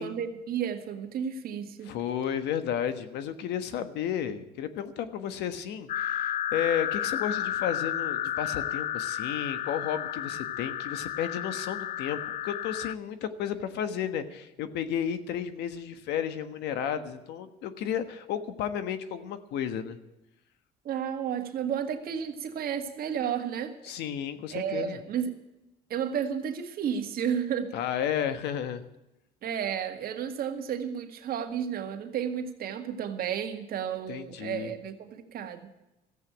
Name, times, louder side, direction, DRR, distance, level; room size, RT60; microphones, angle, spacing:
voice 1, 0.0-1.9 20.8-23.9 24.5-25.3 25.9-27.7 29.4-35.7, right 8 dB, 60° right, 5 dB, 1.9 m, -32 dB
voice 2, 1.8-20.0 23.8-25.0 27.7-28.8 34.1-34.7, left 9 dB, 85° left, 11 dB, 1.4 m, -32 dB
sound 1, 5.9-13.0, left 11 dB, 50° left, 0.4 m, -32 dB
14.5 x 8.3 x 9.0 m, 0.94 s
cardioid pair, 110°, 17 cm